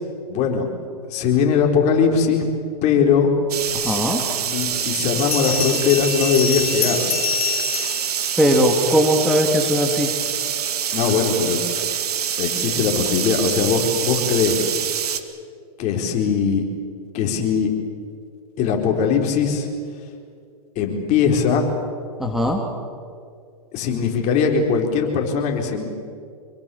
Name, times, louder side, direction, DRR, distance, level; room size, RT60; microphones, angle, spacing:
voice 1, 0.3-0.7 1.1-2.5 2.8-3.3 3.8-4.2 4.4-7.0 10.9-11.6 12.4-14.7 15.8-16.6 17.1-17.7 18.6-19.7 20.8-21.6 23.7-25.8, left 6 dB, 35° left, 2 dB, 4.4 m, -20 dB
sound 1, 3.5-15.2, right 9 dB, 80° right, 1.9 m, -25 dB
voice 2, 3.7-4.2 8.4-10.1 22.2-22.7, equal, ahead, 1 dB, 2.3 m, -19 dB
Bell, 5.2-9.1, left 10 dB, 70° left, 2.3 m, -27 dB
26.5 x 23.0 x 7.2 m, 2.3 s
hypercardioid pair, 125°, 20 cm